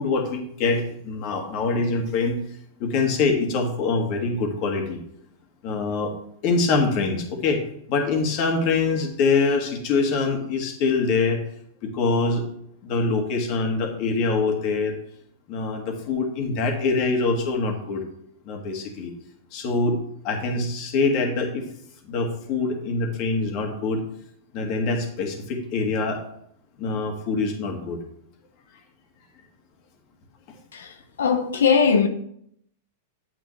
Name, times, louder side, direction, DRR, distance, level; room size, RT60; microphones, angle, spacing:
voice 1, 0.0-2.4 2.8-5.0 5.6-6.1 6.4-11.4 11.8-12.5 12.8-14.9 15.5-18.0 18.4-19.1 19.5-20.0 20.2-21.7 22.0-24.0 24.5-26.2 26.8-28.0, left 4 dB, 50° left, 1.9 m, -24 dB
voice 2, 30.7-32.1, left 6 dB, 80° left, 0.7 m, -20 dB
9.0 x 8.1 x 3.3 m
hypercardioid pair, 110°, 0 cm